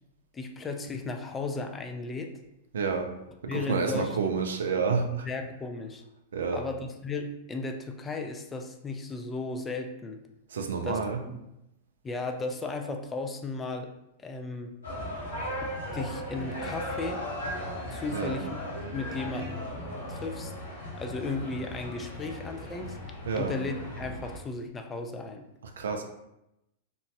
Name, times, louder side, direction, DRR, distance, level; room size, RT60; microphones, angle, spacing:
voice 1, 0.3-2.3 3.5-4.3 5.2-6.0 6.5-10.2 10.8-11.0 11.3-11.4 12.0-13.9 14.2-14.7 15.6-17.2 17.9-18.6 18.9-19.6 20.1-20.5 21.0-23.0 23.4-25.4, left 3 dB, 20° left, 4 dB, 0.4 m, -35 dB
voice 2, 2.7-3.1 3.4-5.3 6.3-6.6 10.5-11.2 18.1-18.4 23.3-23.6 25.8-26.0, right 5 dB, 75° right, 5 dB, 0.4 m, -29 dB
sound 1, 14.8-24.4, equal, 90° left, 1.1 m, -37 dB
2.9 x 2.1 x 2.7 m, 0.86 s
hypercardioid pair, 105°, 0 cm